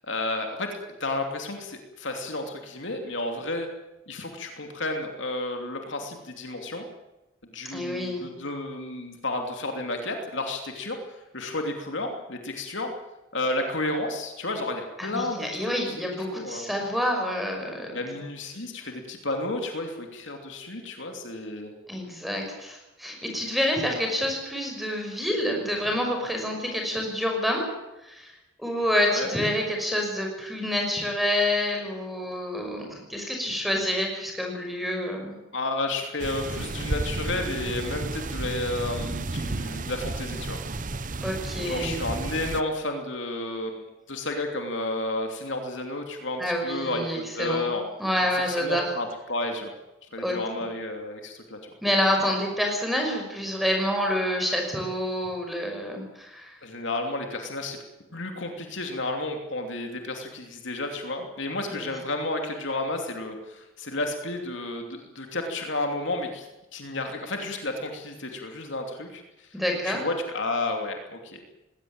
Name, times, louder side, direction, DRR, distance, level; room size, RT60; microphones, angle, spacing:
voice 1, 0.0-3.7 4.1-6.8 7.5-12.9 13.3-16.0 16.3-16.7 17.9-21.7 29.1-29.4 35.5-40.6 41.6-47.8 48.3-49.7 50.1-51.7 56.6-57.8 58.1-66.5 66.7-69.2 69.8-71.6, left 2 dB, 60° left, 3 dB, 2.9 m, -32 dB
voice 2, 7.7-8.2 15.0-18.0 21.9-27.6 28.0-28.3 28.6-35.4 41.2-42.0 46.4-47.7 48.0-48.9 50.2-50.4 51.8-56.6 61.7-61.9 69.5-70.0, equal, ahead, 2 dB, 5.8 m, -28 dB
sound 1, 36.2-42.6, right 2 dB, 40° right, 0.9 m, -32 dB
20.5 x 17.5 x 9.0 m, 1.0 s
head